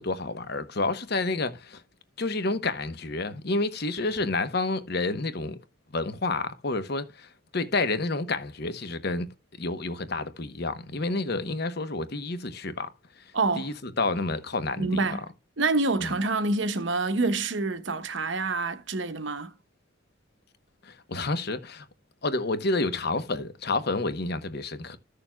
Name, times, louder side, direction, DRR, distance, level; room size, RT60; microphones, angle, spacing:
voice 1, 0.0-1.8 2.2-5.6 5.9-9.3 9.6-12.9 13.6-15.0 16.0-16.1 20.8-21.8 22.2-25.0, left 3 dB, 50° left, 1.0 m, -29 dB
voice 2, 13.3-13.7 14.8-15.2 15.6-19.5, right 3 dB, 65° right, 1.0 m, -27 dB
14.5 x 6.8 x 2.3 m
head